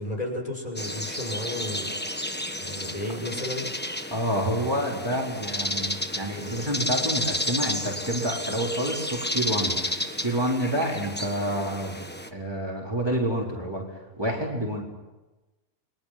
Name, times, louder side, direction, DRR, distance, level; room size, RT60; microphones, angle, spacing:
voice 1, 0.0-1.9 2.6-3.7, left 1 dB, 25° left, 1 dB, 6.1 m, -33 dB
sound 1, 0.8-12.3, left 1 dB, 5° left, 1.3 m, -32 dB
voice 2, 4.1-9.7 10.2-12.0 12.3-14.8, equal, 15° right, -2 dB, 4.3 m, -28 dB
29.5 x 23.5 x 6.1 m, 1.1 s
omnidirectional pair, 1.5 m